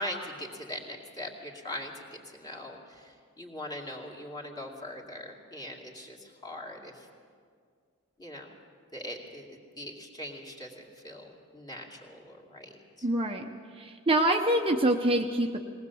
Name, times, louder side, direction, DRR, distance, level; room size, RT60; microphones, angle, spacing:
voice 1, 0.0-1.9 2.3-7.1 8.2-8.5 8.9-12.7 13.0-13.1, left 1 dB, 20° left, -1 dB, 2.5 m, -41 dB
voice 2, 13.0-13.5 13.7-15.6, right 1 dB, 25° right, 2 dB, 0.8 m, -25 dB
20.5 x 19.0 x 7.1 m, 2.1 s
head